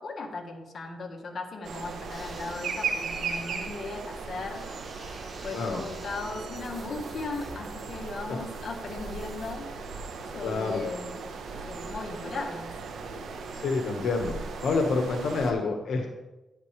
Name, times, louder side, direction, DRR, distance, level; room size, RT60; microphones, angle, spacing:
voice 1, 0.0-4.6 5.4-9.7 10.3-11.1 11.7-12.7, left 3 dB, 55° left, 2 dB, 1.6 m, -37 dB
sound 1, 1.6-15.5, right 5 dB, 80° right, 1.2 m, -37 dB
sound 2, 2.1-9.5, right 2 dB, 30° right, 4.3 m, -47 dB
voice 2, 10.4-10.8 13.5-14.3 14.6-16.1, left 4 dB, 75° left, 3 dB, 1.4 m, -28 dB
11.0 x 10.5 x 3.4 m, 1.0 s
cardioid pair, 95°, 0 cm